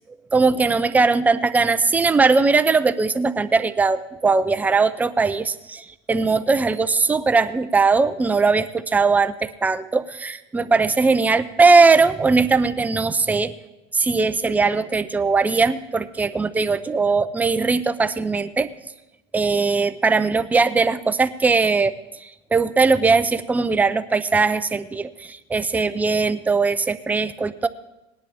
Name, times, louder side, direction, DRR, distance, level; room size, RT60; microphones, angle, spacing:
voice 1, 0.3-13.5 13.9-18.7 19.3-21.9 22.2-27.7, right 4 dB, 10° right, 12 dB, 0.5 m, -19 dB
18.0 x 10.5 x 3.5 m, 0.97 s
supercardioid pair, 125°, 15 cm